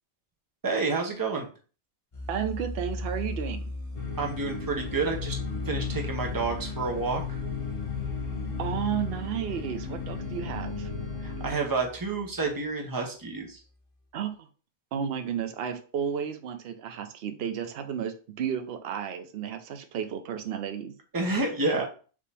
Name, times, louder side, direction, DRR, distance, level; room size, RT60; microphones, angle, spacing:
voice 1, 0.6-1.5 4.2-5.4 5.7-7.4 11.2-13.6 21.1-21.8, right 3 dB, 20° right, 1 dB, 0.8 m, -29 dB
sound 1, 2.1-12.6, left 2 dB, 30° left, 1.0 m, -39 dB
voice 2, 2.3-3.8 8.6-10.9 14.1-14.5 14.9-20.9, right 8 dB, 60° right, 7 dB, 0.8 m, -32 dB
sound 2, 3.9-11.5, left 5 dB, 80° left, 1.7 m, -35 dB
5.1 x 2.8 x 3.4 m, 0.38 s
omnidirectional pair, 1.3 m